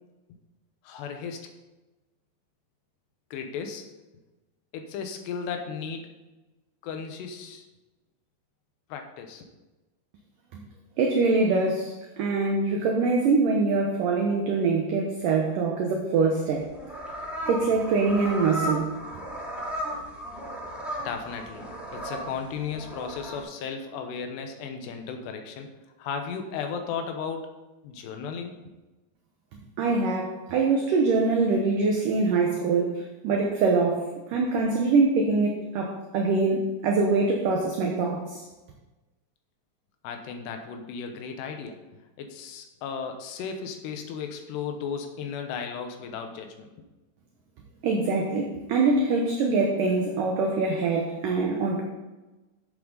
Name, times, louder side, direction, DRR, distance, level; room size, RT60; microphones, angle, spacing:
voice 1, 0.8-1.5 3.3-3.9 4.7-6.1 6.8-7.7 8.9-9.5 21.0-27.5 27.8-28.6 40.0-41.8 42.2-46.7, left 6 dB, 80° left, 5 dB, 3.1 m, -35 dB
voice 2, 11.0-16.7 17.5-19.0 29.8-38.4 47.8-51.8, right 3 dB, 70° right, 1 dB, 2.1 m, -24 dB
sound 1, 16.6-23.4, equal, ahead, 1.4 m, -35 dB
11.0 x 8.4 x 4.0 m, 1.1 s
omnidirectional pair, 5.0 m